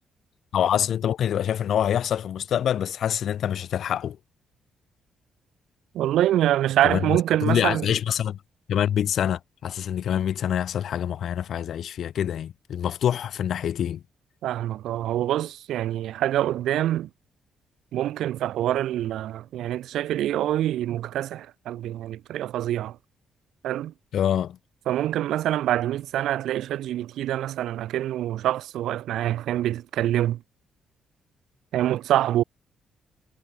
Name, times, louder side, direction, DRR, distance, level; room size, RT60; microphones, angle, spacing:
voice 1, 0.5-4.2 6.8-7.0 7.4-8.4 8.7-14.0 24.1-24.6, left 9 dB, 60° left, 0.7 m, -25 dB
voice 2, 5.9-7.8 14.4-17.1 17.9-23.0 23.6-23.9 24.9-30.4 31.7-32.4, right 12 dB, 85° right, 0.8 m, -25 dB
cardioid pair, 140°, 0 cm